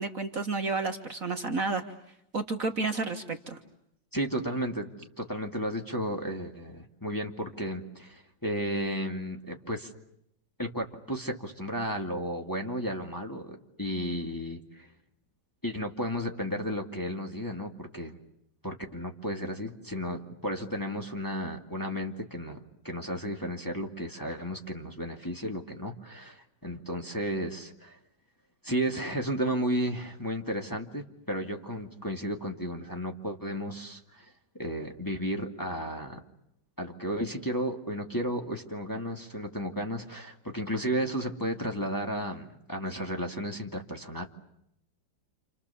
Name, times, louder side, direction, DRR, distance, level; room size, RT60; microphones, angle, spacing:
voice 1, 0.0-1.8 2.3-3.6, right 3 dB, 45° right, 5 dB, 1.8 m, -31 dB
voice 2, 4.1-9.9 10.6-14.9 15.6-18.2 18.6-22.6 22.8-28.0 28.6-36.2 36.8-44.2, equal, 10° left, 1 dB, 2.3 m, -33 dB
29.0 x 28.5 x 7.1 m, 0.78 s
omnidirectional pair, 2.1 m